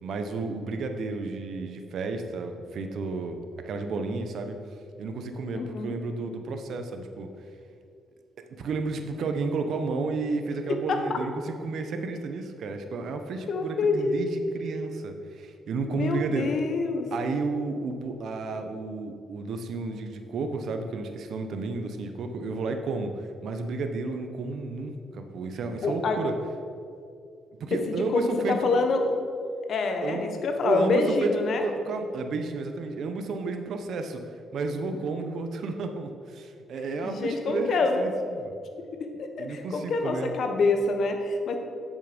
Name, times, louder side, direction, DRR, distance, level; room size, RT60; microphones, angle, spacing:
voice 1, 0.0-4.6 5.0-7.3 8.6-16.5 17.1-26.3 27.6-28.8 30.0-30.3 30.6-38.5 39.4-40.3, right 3 dB, 65° right, 6 dB, 0.9 m, -32 dB
voice 2, 5.5-5.9 10.6-11.2 13.5-14.2 15.9-17.1 25.8-26.2 27.9-28.2 28.5-29.1 29.7-31.6 37.0-38.0 39.2-41.6, left 3 dB, 60° left, 5 dB, 1.2 m, -26 dB
8.4 x 7.1 x 5.2 m, 2.4 s
cardioid pair, 90°, 0 cm